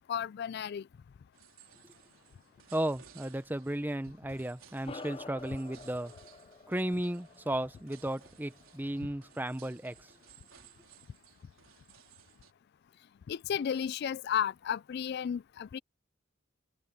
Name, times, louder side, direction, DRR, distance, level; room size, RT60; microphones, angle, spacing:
voice 1, 0.1-0.9 9.0-9.1 13.3-15.8, left 8 dB, 55° left, 0.3 m, -33 dB
sound 1, 1.3-12.5, right 8 dB, 85° right, 3.8 m, -60 dB
voice 2, 2.7-6.1 6.7-10.1, right 1 dB, 10° right, 0.8 m, -34 dB
sound 2, 4.8-9.6, left 3 dB, 25° left, 0.7 m, -49 dB
head